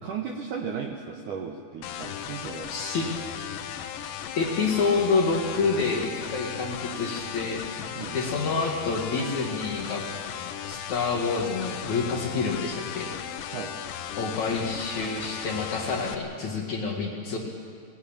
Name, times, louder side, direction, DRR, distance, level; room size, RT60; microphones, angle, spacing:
voice 1, 0.0-2.7 8.0-8.2 12.3-12.4 13.5-13.7 16.8-16.9, right 6 dB, 85° right, 2 dB, 1.7 m, -35 dB
sound 1, 1.8-16.2, left 9 dB, 80° left, 3.2 m, -36 dB
voice 2, 2.7-3.1 4.4-7.6 8.1-10.0 10.6-13.1 14.2-17.4, left 4 dB, 55° left, 0 dB, 2.4 m, -28 dB
21.0 x 16.5 x 8.8 m, 2.1 s
omnidirectional pair, 5.3 m